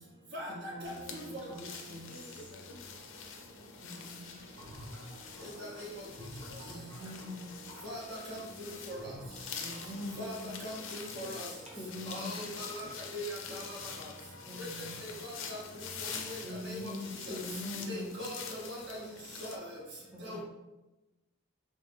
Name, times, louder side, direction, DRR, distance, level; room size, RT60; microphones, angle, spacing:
voice 1, 0.5-2.5 3.8-4.5 6.7-7.6 9.6-10.5 11.8-12.4 14.5-15.1 16.4-18.1 20.1-20.4, left 1 dB, 5° right, -5 dB, 0.4 m, -43 dB
sound 1, 0.8-19.6, left 5 dB, 65° left, 0.5 m, -45 dB
voice 2, 3.9-5.5 6.1-6.2 12.4-13.0 20.2-20.4, right 1 dB, 30° right, -4 dB, 1.1 m, -59 dB
sound 2, 4.6-7.9 9.0-10.7, equal, 80° right, 0.8 m, -50 dB
voice 3, 5.6-5.9 7.8-8.4 8.9-9.0 10.2-10.4 10.6-11.5 12.1-12.9 13.1-13.8 14.6-14.7 15.0-15.6 16.3-16.4 16.6-16.9 17.3-17.4 17.9-19.0 19.4-19.6 20.2-20.4, equal, 55° right, -3 dB, 1.0 m, -41 dB
3.3 x 3.1 x 3.3 m, 1.1 s
head